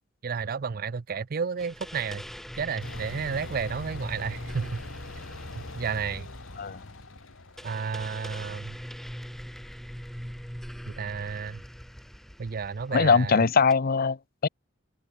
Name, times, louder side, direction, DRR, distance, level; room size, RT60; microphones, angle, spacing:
voice 1, 0.2-2.2 2.6-4.8 5.6-6.3 7.6-8.8 10.9-11.6 12.4-13.4, right 5 dB, 45° right, 0.5 m, -32 dB
sound 1, 1.6-13.7, equal, ahead, 5.5 m, -42 dB
sound 2, 2.8-8.5, left 2 dB, 85° left, 2.1 m, -43 dB
voice 2, 12.9-14.2 14.4-14.5, left 5 dB, 50° left, 0.6 m, -21 dB
open air
head